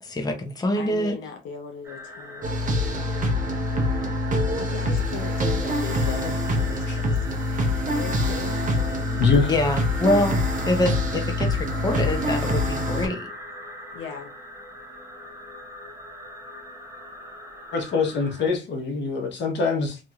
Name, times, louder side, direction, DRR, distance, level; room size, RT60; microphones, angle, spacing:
voice 1, 0.0-1.2 9.5-13.3, left 1 dB, 20° left, 0.7 m, -25 dB
voice 2, 0.7-2.5 4.6-7.6 7.9-8.7 13.9-14.3, left 6 dB, 80° left, 0.6 m, -38 dB
sound 1, 1.8-18.5, equal, 15° right, 0.8 m, -40 dB
sound 2, 2.4-13.1, left 1 dB, 40° right, 0.8 m, -25 dB
voice 3, 9.1-9.5 17.7-20.0, left 4 dB, 65° left, 1.1 m, -24 dB
3.0 x 2.6 x 2.3 m
cardioid pair, 90°, 20 cm